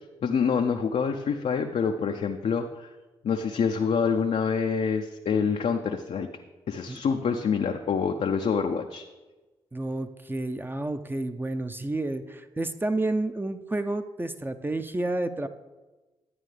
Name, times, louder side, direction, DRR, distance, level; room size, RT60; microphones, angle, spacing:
voice 1, 0.2-2.9 3.2-6.3 6.7-9.1, left 6 dB, 60° left, 4 dB, 0.6 m, -26 dB
voice 2, 9.7-15.5, right 2 dB, 15° right, 9 dB, 0.6 m, -30 dB
11.0 x 8.9 x 3.3 m, 1.2 s
hypercardioid pair, 40°, 13 cm